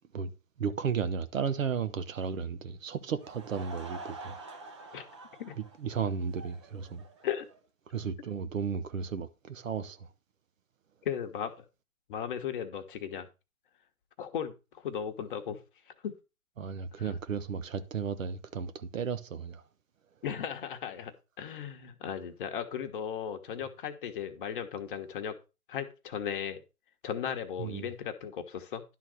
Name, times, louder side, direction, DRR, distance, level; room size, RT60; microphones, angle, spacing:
voice 1, 0.6-4.4 5.8-7.0 7.9-10.1 16.6-19.6 27.6-27.9, right 6 dB, 55° right, 1.2 m, -34 dB
Laughter / Crowd, 3.1-7.6, right 2 dB, 20° right, 0.6 m, -47 dB
voice 2, 11.0-11.5 12.1-13.3 14.2-15.6 16.0-16.1 17.0-17.1 20.2-25.3 25.7-26.6 27.0-28.8, left 8 dB, 35° left, 1.2 m, -36 dB
11.5 x 4.0 x 6.2 m
hypercardioid pair, 145°, 46 cm